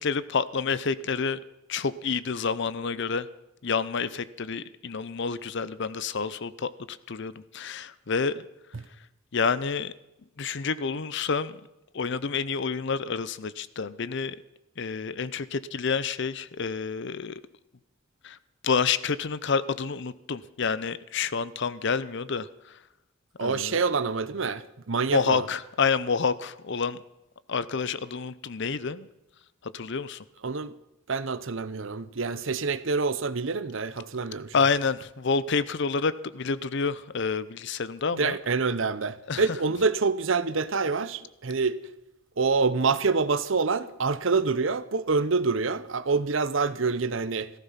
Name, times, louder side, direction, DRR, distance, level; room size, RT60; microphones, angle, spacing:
voice 1, 0.0-1.4 1.7-3.3 3.6-8.4 9.3-9.9 10.4-11.6 11.9-14.4 14.8-17.4 18.2-18.4 18.6-22.5 23.4-23.8 25.1-27.0 27.5-29.1 29.6-30.2 34.5-38.4 39.3-39.4, left 5 dB, 60° left, 0.7 m, -28 dB
voice 2, 23.4-25.4 30.4-30.7 31.1-34.6 38.2-41.8 42.4-47.5, right 4 dB, 65° right, 0.8 m, -26 dB
16.5 x 14.5 x 5.8 m
head